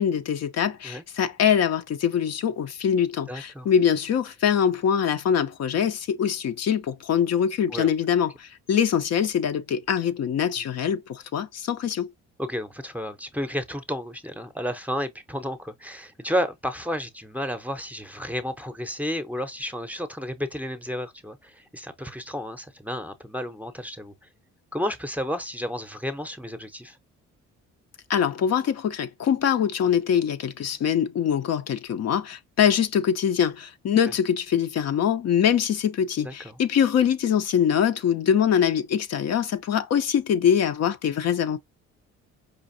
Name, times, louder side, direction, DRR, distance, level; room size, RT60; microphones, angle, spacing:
voice 1, 0.0-12.1 28.1-41.6, left 8 dB, 60° left, 0.6 m, -23 dB
voice 2, 3.3-3.7 7.7-7.9 12.4-24.1 24.7-27.0 36.2-36.6, equal, 5° right, 0.7 m, -32 dB
5.1 x 2.5 x 2.5 m
cardioid pair, 90°, 30 cm